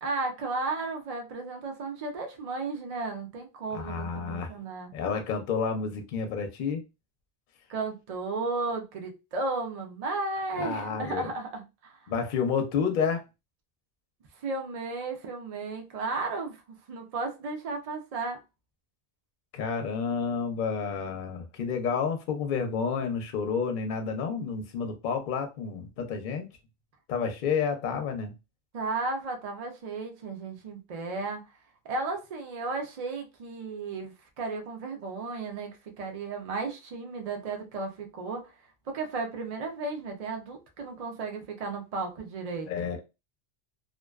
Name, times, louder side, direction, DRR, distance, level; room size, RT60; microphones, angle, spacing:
voice 1, 0.0-4.9 7.7-12.1 14.3-18.4 28.7-31.4 31.8-38.5 38.9-42.7, right 3 dB, 50° right, 0.4 m, -34 dB
voice 2, 3.7-4.5 4.9-6.8 10.6-11.3 12.1-13.2 19.5-26.5 27.1-28.3 42.7-43.0, left 6 dB, 60° left, 0.6 m, -30 dB
2.5 x 2.2 x 2.2 m
omnidirectional pair, 1.1 m